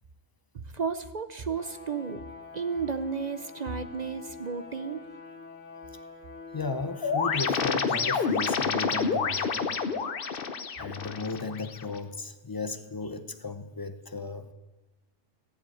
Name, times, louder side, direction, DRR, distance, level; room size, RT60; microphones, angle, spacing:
voice 1, 0.5-2.2 2.5-5.1, right 5 dB, 45° right, 10 dB, 0.5 m, -33 dB
sound 1, 1.5-7.4, left 4 dB, 65° left, 1.7 m, -45 dB
voice 2, 6.5-9.8 10.8-14.5, left 3 dB, 25° left, 9 dB, 0.5 m, -35 dB
sound 2, 7.0-12.0, left 5 dB, 50° left, 1.0 m, -29 dB
15.0 x 7.5 x 9.2 m, 1.1 s
omnidirectional pair, 1.4 m